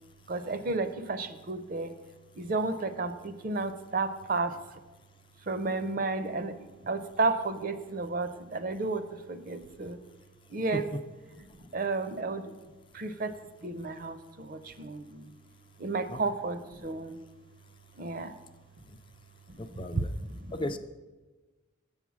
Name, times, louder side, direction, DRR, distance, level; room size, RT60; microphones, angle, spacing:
voice 1, 0.3-1.9 2.4-4.6 5.5-10.0 10.5-10.9 11.4-12.6 12.9-13.3 13.6-15.3 15.8-17.2 18.0-18.4 19.5-19.7 19.9-20.5, right 3 dB, 45° right, 11 dB, 0.5 m, -32 dB
voice 2, 19.6-20.1 20.5-20.8, left 1 dB, 25° left, 9 dB, 0.3 m, -35 dB
7.7 x 7.1 x 6.1 m, 1.2 s
head